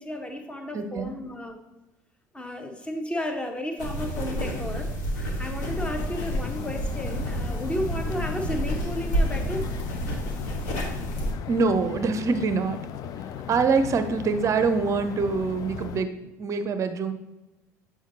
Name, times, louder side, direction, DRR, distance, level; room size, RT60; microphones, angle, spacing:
voice 1, 0.0-1.6 2.3-9.8, left 1 dB, 10° left, 5 dB, 0.8 m, -33 dB
voice 2, 0.7-1.1 11.5-12.8 13.2-17.1, right 4 dB, 30° right, 10 dB, 0.6 m, -25 dB
sound 1, 3.8-11.3, right 1 dB, 65° left, 1.2 m, -30 dB
sound 2, 5.6-16.0, left 9 dB, 40° left, 0.4 m, -37 dB
7.2 x 4.7 x 2.8 m, 1.0 s
figure-of-eight pair, 65°, 10 cm